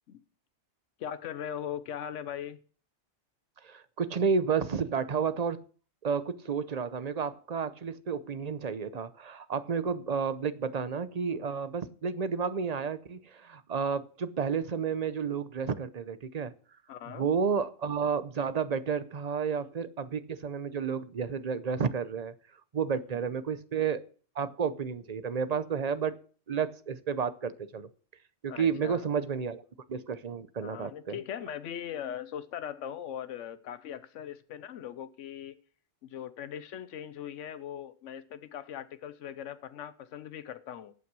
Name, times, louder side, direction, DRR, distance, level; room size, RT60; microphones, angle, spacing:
voice 1, 1.0-2.6 8.9-9.0 16.9-17.3 22.9-23.2 28.5-29.0 30.6-35.5 36.0-40.9, left 9 dB, 90° left, 13 dB, 1.1 m, -40 dB
voice 2, 3.6-5.6 6.0-16.5 17.1-22.3 22.7-24.0 24.4-26.1 26.5-27.9 28.4-29.6 29.9-31.2, right 6 dB, 40° right, 14 dB, 0.7 m, -31 dB
15.5 x 5.9 x 6.1 m, 0.43 s
omnidirectional pair, 1.2 m